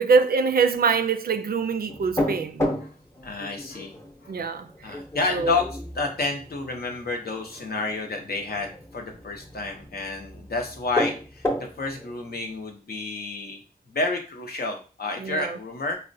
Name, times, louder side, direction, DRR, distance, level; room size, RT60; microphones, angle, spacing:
voice 1, 0.0-2.7 4.3-5.0 5.3-5.6 15.2-15.6, right 5 dB, 70° right, 0.4 m, -24 dB
sound 1, 1.9-12.7, left 1 dB, 15° left, 0.7 m, -33 dB
voice 2, 3.2-3.9 4.8-5.7 5.9-11.4 11.8-13.6 13.9-16.0, left 3 dB, 80° left, 0.7 m, -30 dB
4.1 x 2.1 x 2.6 m
wide cardioid pair, 55°, 16 cm